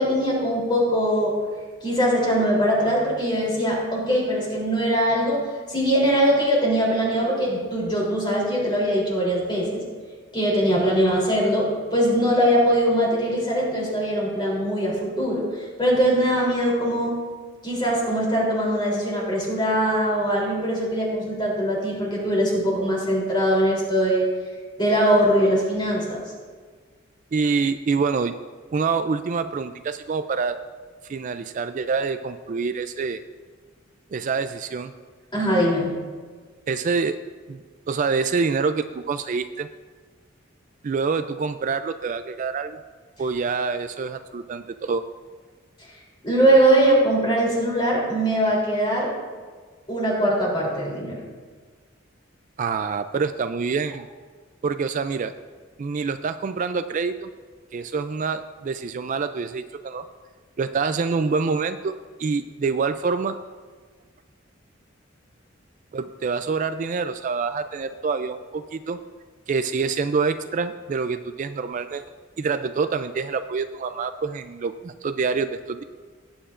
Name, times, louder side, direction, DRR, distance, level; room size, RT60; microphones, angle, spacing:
voice 1, 0.0-1.3 1.8-5.4 5.7-9.8 10.3-15.4 15.8-17.2 17.6-24.3 24.8-26.2 35.3-35.9 46.2-49.1 49.9-51.2, equal, 25° left, -4 dB, 3.3 m, -21 dB
voice 2, 27.3-28.4 28.7-30.6 31.1-33.2 34.1-34.9 36.7-37.2 37.5-37.6 37.9-39.7 40.8-42.8 43.2-45.0 52.6-54.1 54.6-55.3 55.8-57.3 57.7-60.0 60.6-63.4 65.9-69.0 69.5-72.0 72.4-75.8, right 5 dB, 40° right, 10 dB, 0.3 m, -26 dB
18.5 x 8.9 x 2.5 m, 1.5 s
head